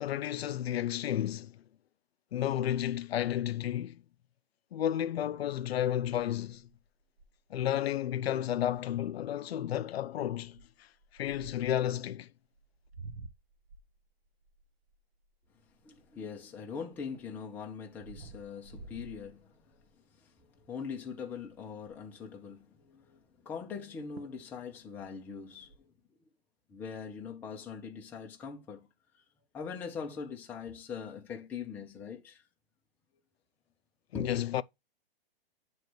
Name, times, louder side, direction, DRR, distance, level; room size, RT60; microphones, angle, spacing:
voice 1, 0.0-1.5 2.3-4.0 4.7-6.6 7.5-10.6 11.1-12.3 34.1-34.6, left 11 dB, 90° left, 0.5 m, -32 dB
sound 1, 6.5-7.6 8.1-8.2 8.5-8.7 9.3-9.6 10.4-11.9 12.5-16.4 16.9-19.9 20.4-20.7 21.0-21.1 21.3-22.1 23.7-23.8 24.2-24.5 24.8-25.8, right 3 dB, 85° right, 0.9 m, -51 dB
voice 2, 15.8-19.8 20.2-25.9 26.7-28.9 29.5-32.4 34.1-34.5, left 6 dB, 5° left, 0.4 m, -42 dB
7.7 x 3.1 x 4.4 m
hypercardioid pair, 145°, 30 cm